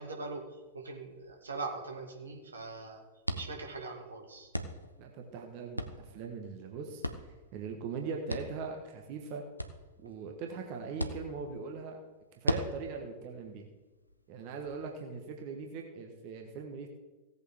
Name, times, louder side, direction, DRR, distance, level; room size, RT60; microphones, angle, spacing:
voice 1, 0.0-3.0 3.3-4.5, right 3 dB, 75° right, 2 dB, 2.0 m, -41 dB
sound 1, 0.6-14.8, equal, 90° left, 0.8 m, -42 dB
voice 2, 5.0-9.4 10.0-12.0 12.4-13.7 14.3-16.9, right 5 dB, 45° right, 2 dB, 1.5 m, -41 dB
17.0 x 8.1 x 3.7 m, 1.2 s
figure-of-eight pair, 90°, 0 cm